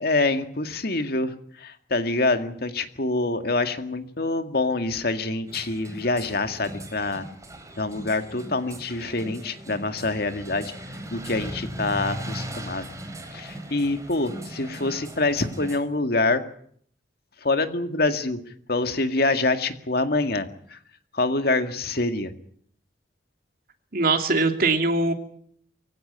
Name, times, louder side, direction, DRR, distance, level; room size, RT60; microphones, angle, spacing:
voice 1, 0.0-1.3 1.6-7.2 7.8-10.7 11.1-12.9 13.3-16.4 17.4-18.4 18.7-20.8 21.1-22.3, left 2 dB, 60° left, 8 dB, 2.1 m, -25 dB
sound 1, 5.5-15.8, right 1 dB, 20° right, 4.4 m, -38 dB
voice 2, 23.9-25.1, right 3 dB, 55° right, 6 dB, 2.8 m, -21 dB
23.5 x 16.5 x 10.0 m, 0.63 s
head